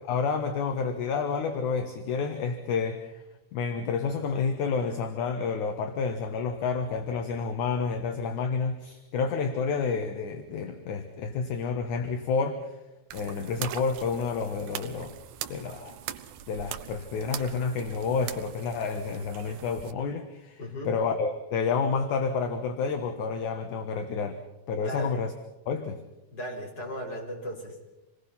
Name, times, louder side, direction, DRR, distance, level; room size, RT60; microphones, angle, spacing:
voice 1, 0.1-3.2 3.5-12.8 13.1-15.2 15.5-16.0 16.5-24.4 24.7-25.3 25.7-26.0, left 5 dB, 65° left, 6 dB, 2.6 m, -29 dB
sound 1, 13.1-19.9, right 11 dB, 70° right, 2.2 m, -41 dB
voice 2, 20.6-20.9 24.8-25.2 26.3-27.9, equal, 30° left, 0 dB, 5.1 m, -36 dB
27.5 x 20.5 x 5.8 m, 0.99 s
omnidirectional pair, 4.2 m